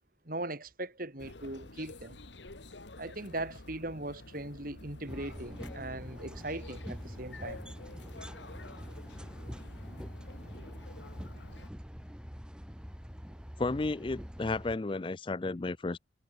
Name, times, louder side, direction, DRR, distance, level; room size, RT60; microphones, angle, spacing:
voice 1, 0.2-2.2 3.0-7.6, right 2 dB, 50° right, 5.1 m, -39 dB
sound 1, 1.2-11.7, left 2 dB, 80° left, 2.3 m, -49 dB
sound 2, 5.1-14.8, equal, 5° right, 3.8 m, -45 dB
voice 2, 13.6-16.0, left 3 dB, 30° left, 0.5 m, -33 dB
head